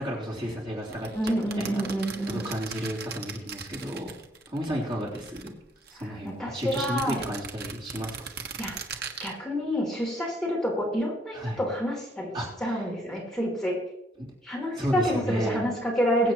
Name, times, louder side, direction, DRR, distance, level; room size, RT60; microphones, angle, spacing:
voice 1, 0.0-1.8 2.3-4.1 4.5-5.5 5.9-8.1 11.3-11.6 12.3-12.9 14.2-14.3 14.8-15.7, equal, 30° right, -5 dB, 3.3 m, -32 dB
sound 1, 0.8-4.6 4.9-6.0 6.6-9.3, right 6 dB, 60° right, 1.3 m, -39 dB
voice 2, 1.1-2.5 6.0-7.2 8.6-12.3 12.6-13.8 14.4-16.3, equal, 5° left, -3 dB, 3.1 m, -28 dB
23.0 x 8.2 x 3.0 m, 0.87 s
head